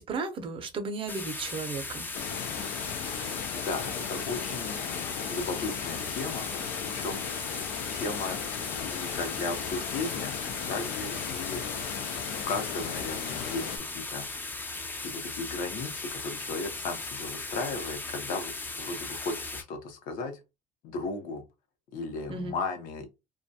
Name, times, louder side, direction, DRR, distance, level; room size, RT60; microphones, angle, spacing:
voice 1, 0.0-2.1 22.3-22.6, right 4 dB, 35° right, 0.5 m, -34 dB
sound 1, 1.1-19.6, left 3 dB, 15° left, 0.3 m, -37 dB
sound 2, 2.1-13.8, left 9 dB, 90° left, 0.4 m, -36 dB
voice 2, 3.5-6.5 6.9-7.6 7.9-8.4 8.7-10.4 10.7-11.9 12.5-14.4 15.0-18.5 18.8-20.4 20.8-21.4 21.9-23.1, left 3 dB, 65° left, 0.8 m, -36 dB
2.3 x 2.2 x 2.6 m
cardioid pair, 135°, 15 cm